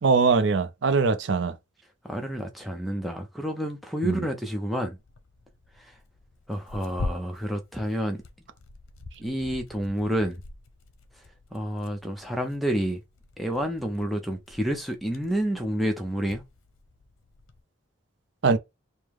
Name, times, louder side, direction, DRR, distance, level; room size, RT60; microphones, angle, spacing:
voice 1, 0.0-1.6 4.0-4.2 18.4-18.6, right 4 dB, 60° right, 0.5 m, -22 dB
voice 2, 2.0-5.0 5.8-5.9 6.5-8.2 9.2-10.4 11.5-13.0 13.4-16.4, equal, ahead, 0.5 m, -29 dB
Tearing, 5.0-17.6, left 3 dB, 85° left, 0.7 m, -44 dB
4.7 x 2.1 x 3.5 m
head